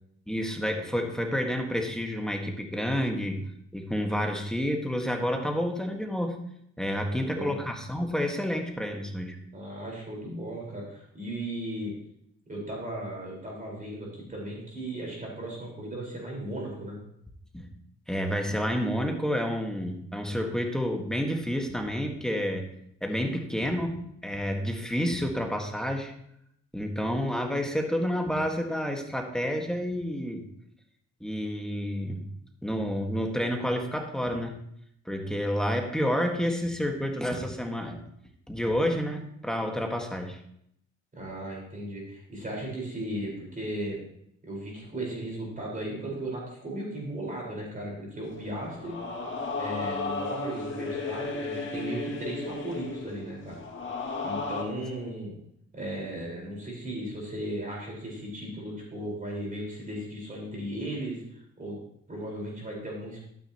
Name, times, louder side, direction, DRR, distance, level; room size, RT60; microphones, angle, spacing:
voice 1, 0.3-3.5 3.7-6.4 6.8-9.4 17.5-17.7 18.1-22.7 23.0-26.1 26.7-30.4 31.2-32.3 32.6-34.5 35.0-38.0 38.5-40.4, equal, ahead, 2 dB, 1.6 m, -29 dB
voice 2, 7.1-7.6 9.5-11.9 12.5-17.0 41.1-44.0 44.4-49.0 49.6-53.6 54.2-55.3 55.7-61.8 62.1-63.2, right 1 dB, 25° right, -2 dB, 4.5 m, -36 dB
sound 1, 48.3-54.6, left 3 dB, 40° left, 2.1 m, -34 dB
12.0 x 9.5 x 2.9 m, 0.72 s
cardioid pair, 90°, 30 cm